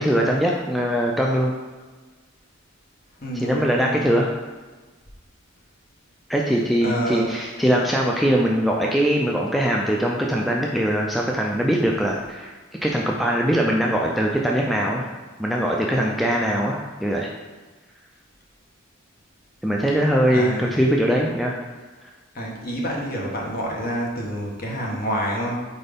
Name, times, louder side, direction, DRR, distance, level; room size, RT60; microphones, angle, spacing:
voice 1, 0.0-1.5 3.4-4.3 6.3-12.5 12.8-15.1 15.4-17.3 19.6-21.6, equal, ahead, -2 dB, 0.3 m, -21 dB
voice 2, 3.2-4.0 6.8-7.3 20.3-20.8 22.3-25.6, equal, 45° left, -3 dB, 1.3 m, -27 dB
4.4 x 4.2 x 5.1 m, 1.3 s
head